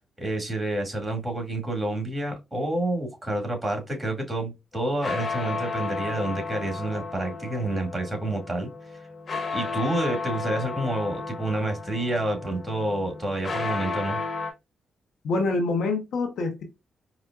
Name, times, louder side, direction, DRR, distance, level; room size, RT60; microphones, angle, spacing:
voice 1, 0.2-8.7 9.5-14.2, right 1 dB, 20° right, 2.0 m, -29 dB
sound 1, 4.7-14.5, left 4 dB, 50° left, 1.0 m, -33 dB
voice 2, 15.2-16.6, left 3 dB, 75° left, 0.8 m, -26 dB
4.8 x 2.1 x 2.3 m
supercardioid pair, 50°, 0 cm